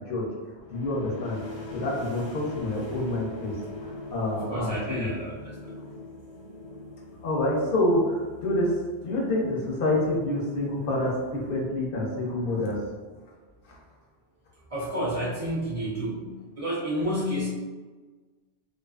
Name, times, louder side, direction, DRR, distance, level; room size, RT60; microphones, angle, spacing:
sound 1, 0.6-12.1, left 2 dB, 90° left, 1.0 m, -42 dB
voice 1, 0.7-1.4 1.7-3.5 3.8-5.1 7.2-8.8 9.0-12.8, left 1 dB, 65° left, -3 dB, 0.7 m, -27 dB
voice 2, 4.5-5.5 14.7-16.3 16.6-17.5, equal, 45° right, -9 dB, 0.5 m, -30 dB
2.5 x 2.4 x 2.3 m, 1.4 s
omnidirectional pair, 1.1 m